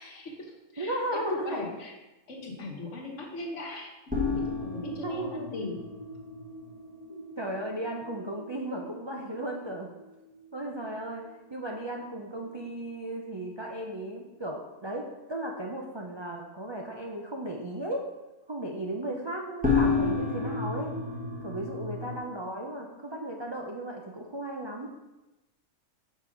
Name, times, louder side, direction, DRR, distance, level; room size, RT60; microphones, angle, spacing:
voice 1, 0.0-1.9 2.3-3.9 4.3-5.8, left 2 dB, 55° left, 0 dB, 1.5 m, -39 dB
voice 2, 0.8-1.6 5.0-5.5 7.1-9.9 10.5-18.1 18.5-20.9 21.4-24.9, right 1 dB, 40° right, -1 dB, 0.3 m, -35 dB
sound 1, 4.1-10.7 11.0-11.1 11.5-11.6 19.6-22.2, left 4 dB, 5° right, 1.2 m, -32 dB
6.1 x 5.3 x 5.1 m, 1.0 s
omnidirectional pair, 1.6 m